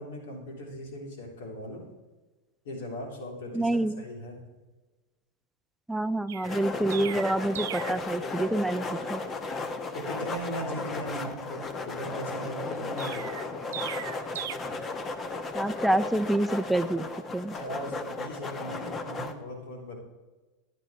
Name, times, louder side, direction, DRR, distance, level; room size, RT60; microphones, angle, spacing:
voice 1, 0.0-1.8 2.7-4.4 9.9-13.3 17.5-20.0, equal, 75° left, 0 dB, 3.4 m, -38 dB
voice 2, 3.5-4.0 5.9-9.2 15.5-17.1 17.3-17.6, right 1 dB, 5° right, 11 dB, 0.5 m, -27 dB
Chirp tweet, 6.3-8.1 13.0-14.5, right 12 dB, 80° right, 0.4 m, -38 dB
sound 1, 6.4-19.3, left 3 dB, 25° left, 1.0 m, -35 dB
14.0 x 10.5 x 3.2 m, 1.2 s
hypercardioid pair, 110°, 0 cm